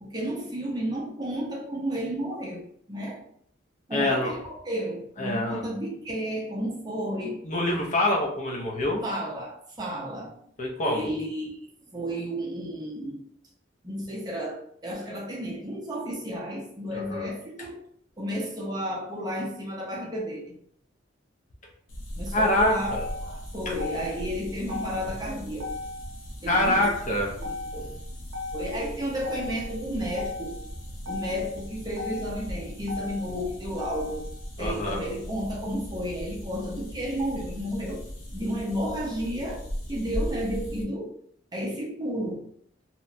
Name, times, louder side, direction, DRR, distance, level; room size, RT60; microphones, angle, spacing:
voice 1, 0.0-3.2 3.9-7.4 9.0-10.3 10.8-11.6 11.9-13.2 13.8-17.8 18.2-20.6 22.2-25.7 26.4-26.9 27.4-27.9 28.5-30.6 31.1-34.2 34.6-38.0 38.3-39.6 39.9-41.1 41.5-42.4, equal, 20° right, -2 dB, 0.5 m, -32 dB
voice 2, 3.9-4.3 5.2-5.6 7.4-9.0 10.6-11.1 16.9-17.3 22.3-23.0 26.5-27.3 34.6-35.0, left 1 dB, 40° left, 0 dB, 0.5 m, -25 dB
sound 1, 21.9-40.8, equal, 85° left, 0.6 m, -38 dB
Motor vehicle (road), 22.7-34.4, left 3 dB, 80° right, 0.7 m, -38 dB
2.8 x 2.1 x 2.5 m, 0.66 s
head